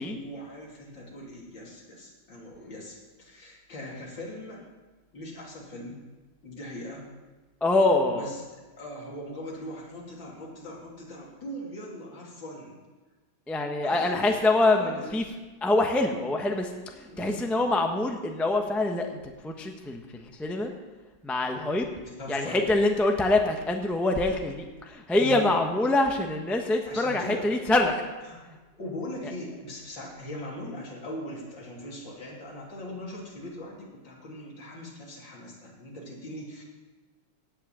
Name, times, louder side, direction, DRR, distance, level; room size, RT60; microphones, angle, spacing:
voice 1, 0.0-4.6 5.1-6.0 6.4-7.1 8.1-8.4 8.7-12.8 13.8-15.1 17.1-17.5 22.2-22.7 25.2-25.5 26.9-27.5 28.2-28.5 28.8-36.6, left 1 dB, 60° left, -3 dB, 3.7 m, -40 dB
voice 2, 7.6-8.3 13.5-15.2 15.6-20.7 21.2-21.9 22.3-28.0, left 2 dB, ahead, 3 dB, 0.5 m, -25 dB
16.5 x 5.7 x 8.8 m, 1.2 s
omnidirectional pair, 2.3 m